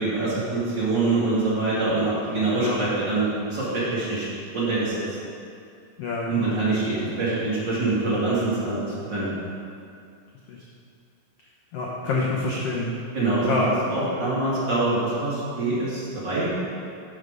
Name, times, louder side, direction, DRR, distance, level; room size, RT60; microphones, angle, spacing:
voice 1, 0.0-5.0 6.3-9.3 13.1-16.5, right 2 dB, 35° right, -10 dB, 2.5 m, -25 dB
voice 2, 6.0-6.6 10.5-10.6 11.7-12.9 13.5-13.7, left 3 dB, 80° left, -4 dB, 1.3 m, -27 dB
12.0 x 4.9 x 5.2 m, 2.4 s
omnidirectional pair, 4.1 m